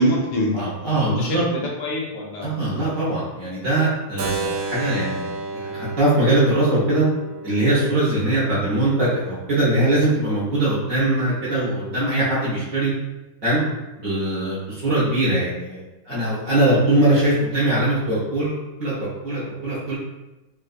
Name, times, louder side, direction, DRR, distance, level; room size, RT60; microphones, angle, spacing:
voice 1, 0.0-2.5, equal, 75° left, -2 dB, 1.3 m, -25 dB
voice 2, 0.5-1.4 2.4-7.0 7.4-12.9 13.4-13.6 14.0-19.9, right 1 dB, 55° right, -10 dB, 1.0 m, -21 dB
Keyboard (musical), 4.2-10.0, right 3 dB, 75° right, 1.4 m, -33 dB
3.8 x 2.4 x 2.4 m, 1.0 s
omnidirectional pair, 2.3 m